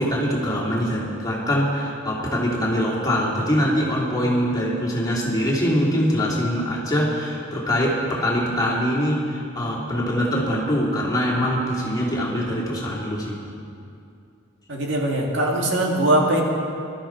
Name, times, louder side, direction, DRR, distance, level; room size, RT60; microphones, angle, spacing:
voice 1, 0.0-13.4, equal, 20° left, -5 dB, 2.8 m, -23 dB
voice 2, 14.7-16.4, right 1 dB, 60° right, -1 dB, 2.2 m, -21 dB
22.5 x 13.0 x 4.6 m, 2.4 s
head